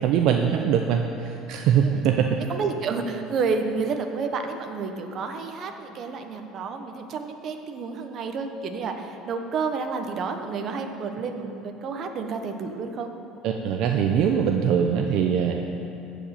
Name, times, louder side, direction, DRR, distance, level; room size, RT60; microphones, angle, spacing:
voice 1, 0.0-2.3 13.4-15.6, right 8 dB, 60° right, 3 dB, 0.6 m, -22 dB
voice 2, 2.5-13.1, right 4 dB, 40° right, 5 dB, 1.0 m, -30 dB
14.0 x 5.2 x 8.8 m, 2.9 s
cardioid pair, 145°, 0 cm